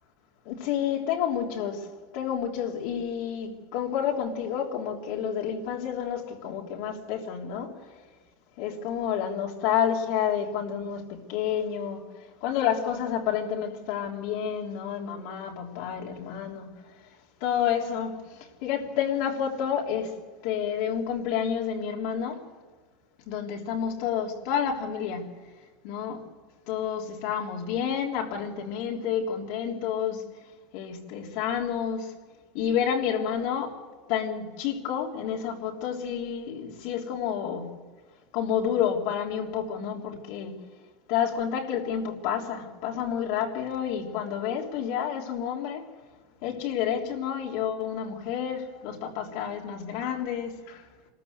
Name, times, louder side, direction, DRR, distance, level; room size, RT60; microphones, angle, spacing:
voice 1, 0.4-1.9 2.1-7.7 8.6-12.0 12.4-16.7 17.4-18.1 18.6-20.1 20.4-22.4 23.3-25.3 25.8-26.2 26.7-30.2 30.7-32.1 32.5-33.8 34.1-37.7 38.3-40.6 41.1-45.8 46.4-50.8, left 8 dB, 60° left, 0 dB, 3.3 m, -29 dB
26.0 x 14.0 x 8.1 m, 1.4 s
supercardioid pair, 155°, 0 cm